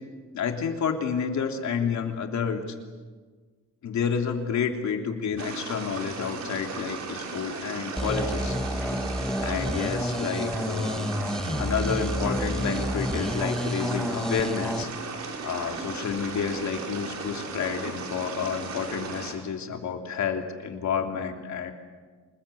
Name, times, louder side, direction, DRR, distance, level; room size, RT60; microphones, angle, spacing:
voice 1, 0.3-2.6 3.8-8.8 9.4-11.1 11.6-14.9 15.4-21.7, left 6 dB, 70° left, 4 dB, 3.2 m, -30 dB
sound 1, 5.4-19.3, right 4 dB, 65° right, 5.4 m, -36 dB
sound 2, 8.0-14.8, equal, ahead, 1.5 m, -29 dB
27.5 x 21.0 x 8.5 m, 1.4 s
cardioid pair, 125°, 30 cm